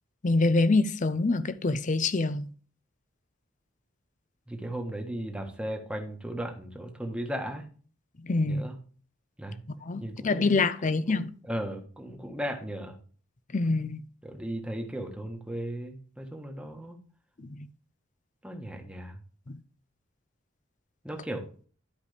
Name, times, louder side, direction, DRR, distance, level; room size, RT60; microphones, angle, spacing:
voice 1, 0.2-2.5 8.2-8.6 9.8-11.3 13.5-14.0 17.4-17.7 19.5-19.6, left 3 dB, 40° left, 0.6 m, -26 dB
voice 2, 4.5-7.6 8.4-8.8 9.4-10.5 10.9-13.0 14.2-17.0 18.4-19.2 21.0-21.5, right 1 dB, 5° right, 1.5 m, -36 dB
12.0 x 5.1 x 3.4 m
head